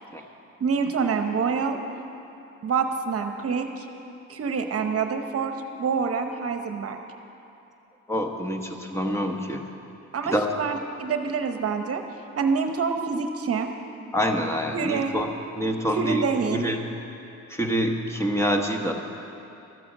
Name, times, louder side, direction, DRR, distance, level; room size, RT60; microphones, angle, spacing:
voice 1, 0.6-1.8 2.6-3.9 4.3-7.0 10.1-12.0 12.4-13.7 14.7-15.2 15.9-16.7, right 5 dB, 50° right, 6 dB, 1.0 m, -26 dB
voice 2, 8.1-9.6 10.2-10.5 14.1-16.2 16.5-16.8 17.5-18.9, equal, 10° left, 3 dB, 1.2 m, -26 dB
13.5 x 9.0 x 7.3 m, 2.8 s
cardioid pair, 90°, 30 cm